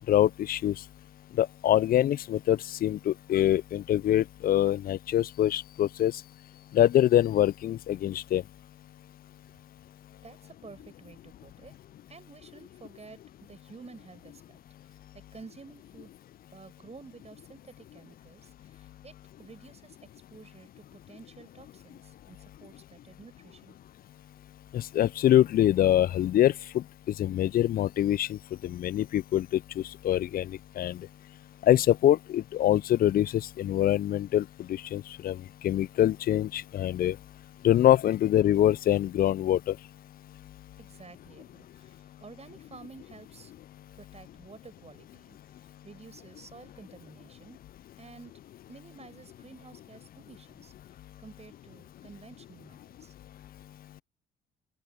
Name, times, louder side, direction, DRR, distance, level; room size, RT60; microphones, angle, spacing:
voice 1, 0.1-0.9 1.3-6.2 6.7-8.4 24.7-31.1 31.6-37.2 37.6-39.8 40.3-40.5 53.9-54.0, left 12 dB, 50° left, 0.4 m, -25 dB
voice 2, 10.2-11.7 12.1-14.6 15.1-16.1 16.5-20.0 20.3-23.8 40.8-43.5 44.0-45.4 45.8-47.6 48.0-48.3 48.7-50.7 51.2-53.1, right 4 dB, 35° right, 7.1 m, -51 dB
open air
supercardioid pair, 60°, 19 cm